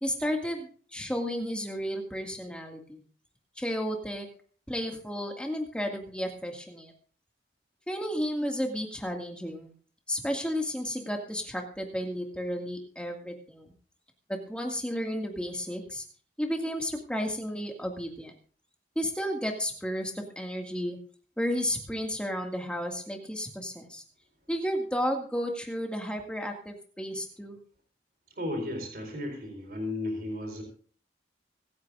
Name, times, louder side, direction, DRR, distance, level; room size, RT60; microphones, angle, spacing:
voice 1, 0.0-3.0 3.6-4.3 4.7-6.9 7.9-9.7 10.1-13.7 14.5-16.0 16.4-18.3 19.0-21.0 21.4-24.0 24.5-27.6, equal, 5° left, 2 dB, 2.0 m, -32 dB
voice 2, 28.4-30.6, left 1 dB, 55° right, 2 dB, 4.4 m, -34 dB
25.0 x 9.5 x 2.5 m, 0.44 s
head